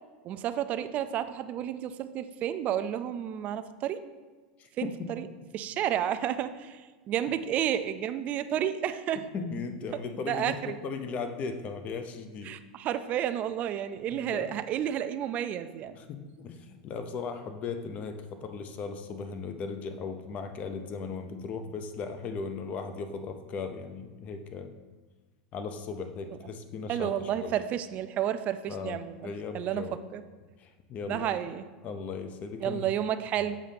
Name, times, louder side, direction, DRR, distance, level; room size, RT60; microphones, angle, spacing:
voice 1, 0.2-4.0 4.8-5.3 5.5-9.2 9.9-10.0 10.3-10.8 12.5-16.0 26.9-30.2 31.1-31.6 32.6-33.6, right 10 dB, 35° right, 11 dB, 0.3 m, -31 dB
voice 2, 4.6-5.1 9.3-12.5 14.1-14.6 15.9-24.8 25.5-27.5 28.7-30.0 30.6-31.4 31.8-32.9, left 5 dB, 35° left, 7 dB, 0.6 m, -37 dB
7.1 x 2.8 x 5.1 m, 1.3 s
supercardioid pair, 130°, 4 cm